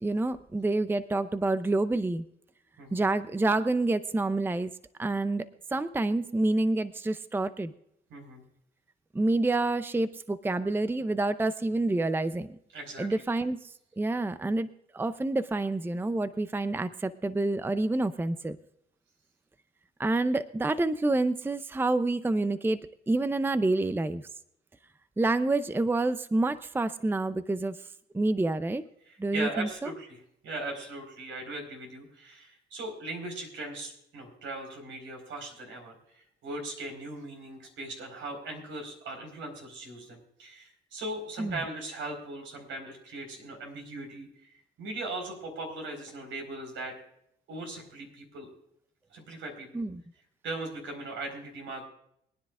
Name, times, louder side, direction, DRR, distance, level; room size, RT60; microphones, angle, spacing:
voice 1, 0.0-2.2 2.9-4.7 5.0-5.4 5.7-7.7 9.1-12.6 13.0-14.7 14.9-18.6 20.0-22.8 23.1-24.2 25.2-27.8 28.1-28.8 29.2-29.7 41.4-41.5 49.7-50.0, right 2 dB, 10° right, 12 dB, 0.6 m, -28 dB
voice 2, 8.1-8.4 12.7-13.2 29.1-46.9 47.5-48.5 49.1-49.8 50.4-51.9, right 2 dB, 75° right, 3 dB, 4.5 m, -39 dB
23.5 x 10.0 x 2.4 m, 0.73 s
cardioid pair, 90°, 20 cm